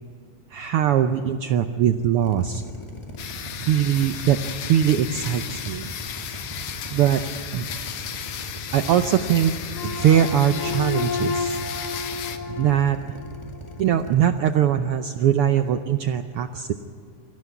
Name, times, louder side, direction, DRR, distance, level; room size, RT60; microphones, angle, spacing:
voice 1, 0.5-2.6 3.7-4.4 4.7-5.9 6.9-7.3 7.5-7.7 8.7-9.5 9.8-11.6 12.5-13.0 13.8-16.7, right 10 dB, 75° right, 8 dB, 1.3 m, -21 dB
Drill, 2.2-14.2, equal, 15° left, 1.4 m, -39 dB
sound 1, 3.2-12.4, left 9 dB, 80° left, 2.5 m, -35 dB
sound 2, 9.7-14.0, left 5 dB, 60° left, 2.3 m, -31 dB
24.5 x 15.0 x 9.5 m, 2.3 s
omnidirectional pair, 3.3 m